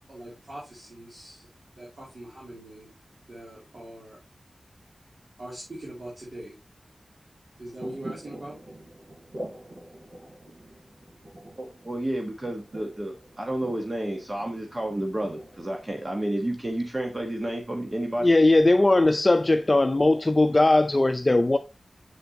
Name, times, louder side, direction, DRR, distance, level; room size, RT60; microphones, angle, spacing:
voice 1, 0.1-1.5 1.8-2.9 3.3-4.2 5.4-6.6 7.6-8.5, right 1 dB, 55° right, 2.9 m, -41 dB
sound 1, 7.7-15.9, right 1 dB, 75° right, 4.1 m, -44 dB
voice 2, 11.6-18.3, right 1 dB, 30° right, 1.2 m, -31 dB
voice 3, 18.2-21.6, left 2 dB, 35° left, 0.5 m, -19 dB
7.1 x 6.7 x 2.8 m
wide cardioid pair, 65°, 0 cm